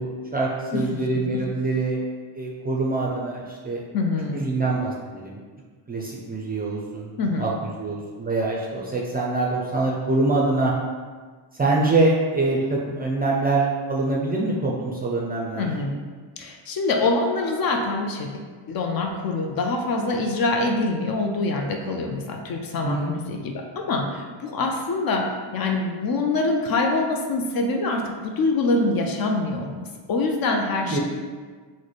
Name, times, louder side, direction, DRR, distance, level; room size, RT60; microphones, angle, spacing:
voice 1, 0.0-2.0 2.3-3.8 4.3-5.4 5.9-7.1 7.4-7.5 7.8-10.7 11.6-15.7 22.8-23.1 30.8-31.0, right 2 dB, 20° right, -3 dB, 0.4 m, -24 dB
voice 2, 0.7-1.4 3.9-4.5 7.2-7.6 15.6-16.0 16.4-18.4 18.7-31.0, left 3 dB, 50° left, 2 dB, 0.5 m, -25 dB
3.1 x 2.1 x 3.9 m, 1.5 s
cardioid pair, 110°, 47 cm